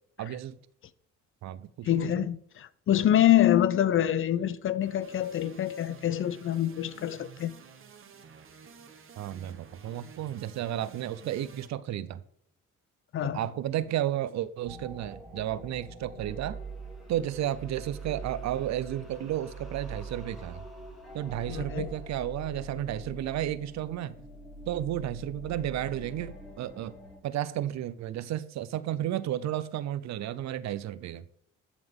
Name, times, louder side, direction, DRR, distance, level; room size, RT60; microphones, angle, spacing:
voice 1, 0.2-0.6 1.4-2.3 9.2-12.2 13.2-16.6 17.1-20.6 21.1-24.2 24.7-27.0 27.2-31.2, right 12 dB, 65° right, 0.5 m, -33 dB
voice 2, 1.8-7.5 13.1-13.4 21.5-21.9, left 11 dB, 45° left, 0.4 m, -25 dB
sound 1, 4.8-11.7, right 6 dB, 45° right, 1.0 m, -52 dB
Scary night, 14.6-27.2, right 2 dB, ahead, 1.9 m, -43 dB
11.0 x 3.8 x 3.5 m
cardioid pair, 90°, 30 cm